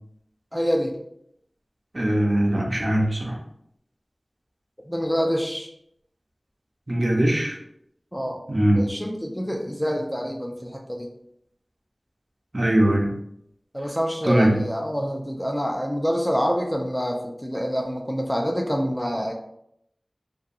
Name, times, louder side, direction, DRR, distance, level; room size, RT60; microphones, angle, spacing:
voice 1, 0.5-0.9 4.9-5.7 8.1-8.4 8.8-11.1 13.7-19.3, equal, 10° left, 1 dB, 0.4 m, -26 dB
voice 2, 1.9-3.4 6.9-7.6 8.5-8.9 12.5-13.1 14.2-14.6, right 1 dB, 50° right, -2 dB, 0.6 m, -21 dB
2.7 x 2.2 x 2.5 m, 0.76 s
wide cardioid pair, 50°, 0 cm